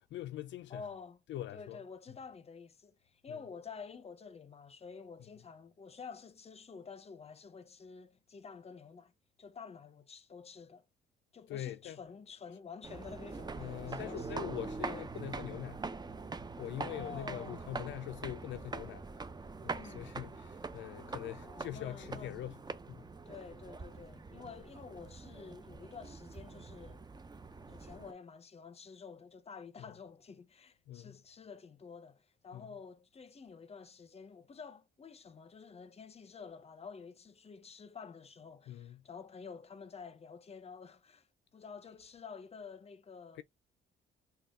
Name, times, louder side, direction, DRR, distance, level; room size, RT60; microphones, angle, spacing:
voice 1, 0.1-0.8 1.3-1.8 3.3-3.4 11.5-12.0 13.6-15.8 16.6-19.0 19.6-22.6 22.9-23.1 29.8-29.9 30.9-31.2 32.5-32.7 38.7-39.0, left 12 dB, 70° left, 0.4 m, -43 dB
voice 2, 0.7-1.2 1.5-9.1 9.4-10.8 11.3-14.3 14.8-15.1 16.8-17.6 19.7-20.2 21.4-22.4 23.3-27.0 27.7-41.3 41.5-43.4, left 5 dB, 30° left, 0.7 m, -50 dB
sound 1, 12.8-28.1, right 4 dB, 20° right, 0.6 m, -44 dB
4.1 x 2.3 x 3.5 m
cardioid pair, 90°, 20 cm